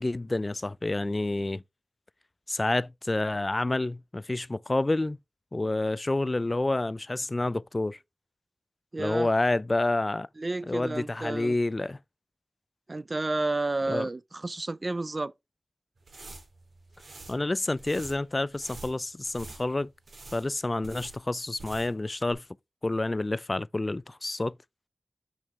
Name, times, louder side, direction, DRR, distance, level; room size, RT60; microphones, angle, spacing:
voice 1, 0.0-1.6 2.5-5.2 5.5-8.0 9.0-10.3 10.7-12.0 13.9-14.1 17.3-19.9 20.3-22.4 22.8-24.5, left 2 dB, 35° left, 0.3 m, -28 dB
voice 2, 8.9-9.3 10.4-11.5 12.9-15.3, right 2 dB, 40° right, 0.4 m, -31 dB
sound 1, 16.0-22.0 22.3-22.4, right 2 dB, 75° right, 2.5 m, -47 dB
6.1 x 6.0 x 3.5 m
wide cardioid pair, 55°, 0 cm